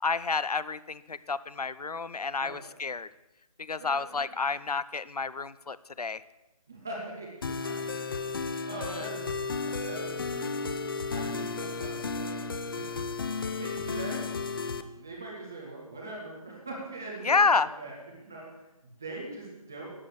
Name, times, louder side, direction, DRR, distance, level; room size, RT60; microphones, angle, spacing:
voice 1, 0.0-3.1 3.6-6.2 8.7-9.1 17.2-17.7, left 4 dB, 80° left, 17 dB, 0.6 m, -29 dB
voice 2, 3.8-4.2 6.7-9.2 9.5-10.8 11.1-13.2 13.5-14.2 14.9-19.9, right 2 dB, 5° right, -2 dB, 0.4 m, -42 dB
sound 1, 7.4-14.8, left 4 dB, 35° left, 0.7 m, -33 dB
12.0 x 8.8 x 6.6 m, 0.97 s
figure-of-eight pair, 155°, 19 cm